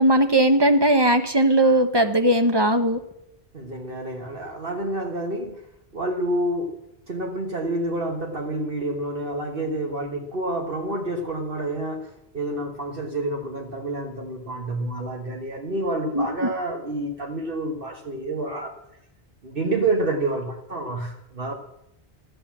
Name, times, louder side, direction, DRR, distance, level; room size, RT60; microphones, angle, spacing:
voice 1, 0.0-3.0 16.1-16.5, right 1 dB, 25° right, 7 dB, 1.0 m, -19 dB
voice 2, 3.5-5.6 5.9-6.7 7.1-18.7 19.4-21.5, right 2 dB, 60° right, 2 dB, 1.6 m, -28 dB
13.0 x 9.8 x 7.3 m, 0.82 s
omnidirectional pair, 1.1 m